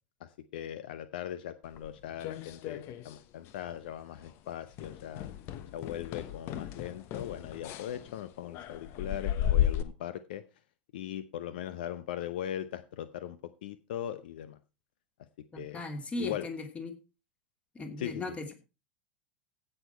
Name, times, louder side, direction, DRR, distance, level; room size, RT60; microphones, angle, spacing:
voice 1, 0.2-5.3 5.7-10.4 10.9-14.6 15.6-15.8 16.2-16.5 18.0-18.3, left 11 dB, 65° left, 14 dB, 0.7 m, -39 dB
sound 1, 1.8-3.2 3.5-3.8 4.2-4.3 4.8-9.8, left 11 dB, 45° left, 1.1 m, -34 dB
voice 2, 15.5-17.0 17.7-18.5, left 2 dB, 25° left, 6 dB, 2.8 m, -38 dB
16.0 x 6.6 x 4.3 m, 0.31 s
figure-of-eight pair, 85°, 5 cm